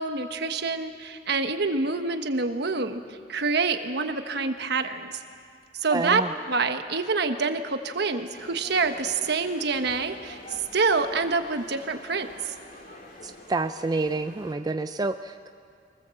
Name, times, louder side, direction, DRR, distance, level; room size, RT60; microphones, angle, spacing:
voice 1, 0.0-5.1 5.7-6.2 6.5-12.5, right 4 dB, 65° right, 7 dB, 1.3 m, -27 dB
voice 2, 5.9-6.3 13.2-15.5, right 3 dB, 20° right, 8 dB, 0.4 m, -28 dB
sound 1, 8.3-14.5, left 2 dB, 50° left, 2.7 m, -46 dB
24.0 x 18.5 x 7.7 m, 2.2 s
head